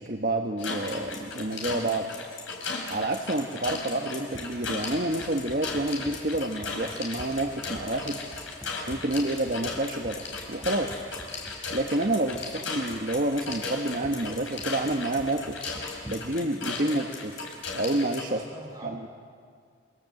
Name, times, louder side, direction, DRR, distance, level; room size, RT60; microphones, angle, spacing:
voice 1, 0.0-2.1 2.9-8.2 8.9-11.0 11.7-15.6 16.1-17.3 17.7-18.4 18.8-19.1, right 1 dB, 45° right, 2 dB, 1.3 m, -28 dB
sound 1, 0.6-18.2, left 4 dB, 80° left, 4.9 m, -36 dB
Run, 4.3-16.4, equal, 10° left, 4.1 m, -47 dB
voice 2, 18.3-19.1, right 1 dB, 20° right, -1 dB, 5.0 m, -44 dB
27.5 x 24.5 x 7.8 m, 2.1 s
head